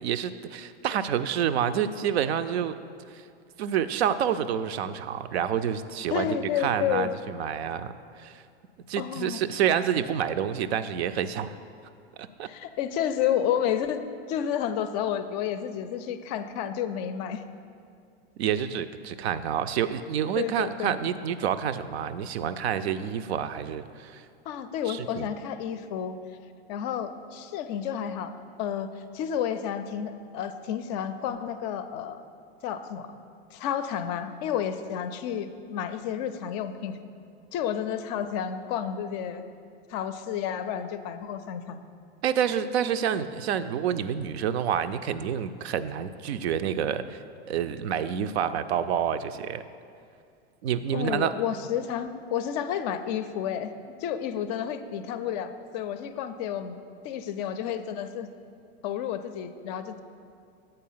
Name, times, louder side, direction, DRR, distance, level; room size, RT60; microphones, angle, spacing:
voice 1, 0.0-2.7 3.1-3.2 3.6-8.4 8.9-11.6 12.2-12.5 18.4-24.3 24.9-25.3 42.2-47.2 47.5-49.6 50.6-51.3, right 9 dB, 80° right, 11 dB, 0.5 m, -28 dB
voice 2, 6.1-7.1 9.0-9.4 12.4-14.0 14.3-17.4 20.3-21.0 24.5-26.2 26.7-28.3 28.6-32.2 32.6-33.1 33.5-37.0 37.5-39.4 39.9-41.8 50.9-53.7 54.0-56.8 57.0-58.3 58.8-60.0, left 9 dB, 45° left, 10 dB, 0.4 m, -31 dB
7.8 x 4.2 x 5.5 m, 2.4 s
hypercardioid pair, 125°, 32 cm